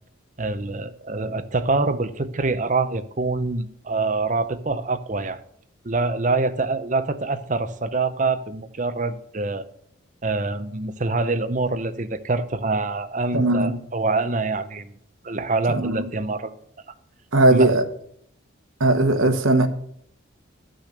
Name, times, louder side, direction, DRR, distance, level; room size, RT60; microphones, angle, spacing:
voice 1, 0.4-5.4 5.8-9.7 10.2-14.9 15.2-16.5 17.5-17.7, right 3 dB, 40° right, 0.7 m, -25 dB
voice 2, 13.3-13.7 15.7-16.0 17.3-17.8 18.8-19.7, right 2 dB, 80° right, 1.2 m, -18 dB
12.0 x 6.3 x 6.7 m
head